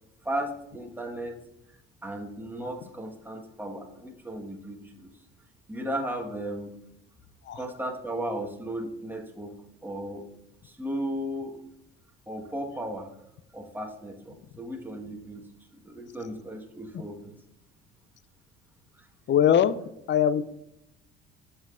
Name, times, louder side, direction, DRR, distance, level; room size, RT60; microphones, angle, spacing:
voice 1, 0.2-1.4 2.0-5.1 5.7-6.8 7.5-9.6 9.8-10.2 10.6-11.6 12.3-13.1 13.5-15.4 15.7-17.3 19.0-19.1, right 1 dB, 5° right, 1 dB, 1.5 m, -35 dB
voice 2, 19.3-19.8 20.1-20.4, left 9 dB, 35° left, 16 dB, 0.5 m, -21 dB
14.0 x 5.5 x 2.5 m, 0.80 s
hypercardioid pair, 55°, 32 cm